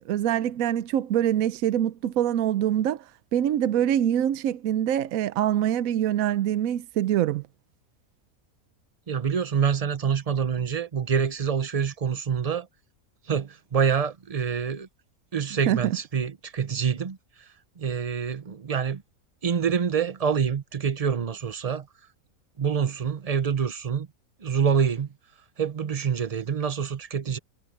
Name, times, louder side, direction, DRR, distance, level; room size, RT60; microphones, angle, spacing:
voice 1, 0.1-3.0 3.3-7.4 15.7-16.0, right 11 dB, 75° right, 1.0 m, -24 dB
voice 2, 9.1-12.7 13.3-14.9 15.3-17.2 17.8-19.0 19.4-21.9 22.6-24.1 24.4-25.1 25.6-27.4, right 7 dB, 35° right, 0.7 m, -26 dB
omnidirectional pair, 1.5 m